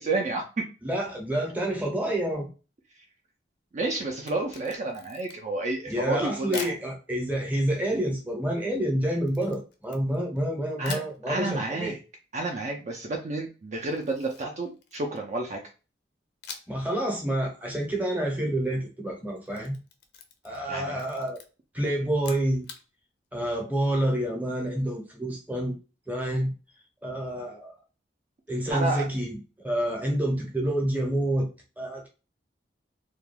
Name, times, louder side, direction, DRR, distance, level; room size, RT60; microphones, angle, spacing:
voice 1, 0.0-0.7 3.7-6.7 10.8-11.0 11.3-12.0 12.3-15.6 20.7-21.0 28.7-29.1, right 2 dB, 40° right, 1 dB, 0.4 m, -30 dB
voice 2, 0.8-2.5 5.9-12.0 16.7-19.8 20.4-21.4 21.7-22.7 23.3-25.8 26.1-26.5 27.0-27.7 28.5-29.4 29.6-31.5 31.8-32.1, right 1 dB, 10° right, 0 dB, 0.7 m, -28 dB
Camera, 4.1-5.6 6.5-6.8 9.3-10.4 10.8-11.2 13.8-15.3 16.4-16.9 17.2-17.3 19.3-20.7 20.9-21.5 22.1-22.8, left 6 dB, 60° left, 0.5 m, -43 dB
2.2 x 2.2 x 3.2 m, 0.32 s
head